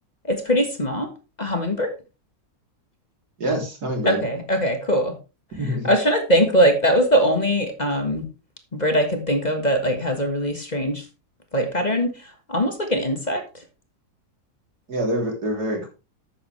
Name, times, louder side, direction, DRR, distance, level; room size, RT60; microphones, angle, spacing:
voice 1, 0.2-1.1 1.4-1.9 4.0-5.2 5.6-8.3 8.7-11.1 11.5-13.6, equal, 30° left, 5 dB, 1.7 m, -22 dB
voice 2, 3.4-4.2 5.6-5.9 14.9-15.9, equal, 85° right, 1 dB, 3.8 m, -25 dB
12.0 x 8.6 x 3.3 m, 0.29 s
omnidirectional pair, 1.6 m